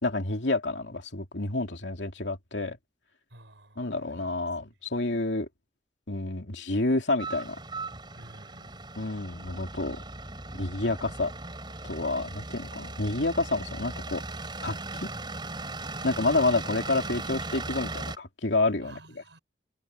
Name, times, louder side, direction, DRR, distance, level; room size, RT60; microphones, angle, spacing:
voice 1, 0.0-2.8 3.8-5.5 6.1-7.6 9.0-10.0 10.5-11.3 11.8-14.2 14.6-15.1 16.0-19.4, left 2 dB, 75° left, 2.5 m, -29 dB
voice 2, 3.3-4.3 8.1-8.8 16.3-16.4 18.8-19.4, right 1 dB, 75° right, 5.7 m, -52 dB
sound 1, 7.2-18.2, right 2 dB, 25° right, 4.1 m, -38 dB
head